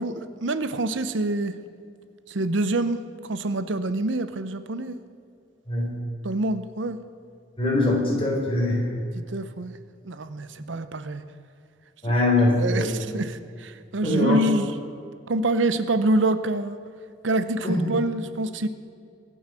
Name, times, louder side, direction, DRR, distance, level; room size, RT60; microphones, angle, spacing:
voice 1, 0.0-1.5 2.3-5.0 6.2-7.0 9.2-9.7 10.1-11.2 12.1-12.2 12.6-14.7 15.3-16.8 17.2-18.7, right 2 dB, 75° right, 12 dB, 0.7 m, -26 dB
voice 2, 5.7-6.0 7.6-8.8 12.0-12.9 14.0-14.4 17.6-17.9, left 2 dB, 30° left, -2 dB, 3.9 m, -22 dB
23.5 x 7.9 x 6.2 m, 2.4 s
head